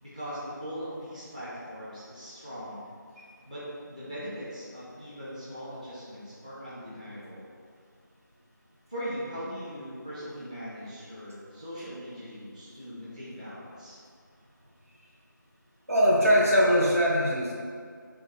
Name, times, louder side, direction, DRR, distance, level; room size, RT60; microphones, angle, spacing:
voice 1, 0.0-2.8 3.5-3.6 3.9-7.4 8.9-14.0, equal, 20° right, -11 dB, 1.3 m, -40 dB
voice 2, 15.9-17.5, equal, 45° right, -5 dB, 1.5 m, -21 dB
7.8 x 3.6 x 3.5 m, 2.2 s
figure-of-eight pair, 175°, 11 cm